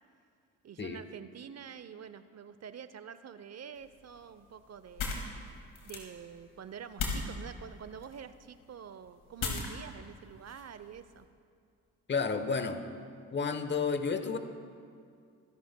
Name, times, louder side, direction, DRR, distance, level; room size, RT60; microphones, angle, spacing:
voice 1, 0.6-5.4 5.8-11.3, right 7 dB, 40° right, 13 dB, 0.7 m, -47 dB
sound 1, 3.8-11.2, left 4 dB, 70° left, 2.2 m, -40 dB
voice 2, 12.1-12.8 13.3-14.4, left 5 dB, 30° left, 9 dB, 1.0 m, -31 dB
24.5 x 11.0 x 2.2 m, 2.3 s
hypercardioid pair, 55°, 39 cm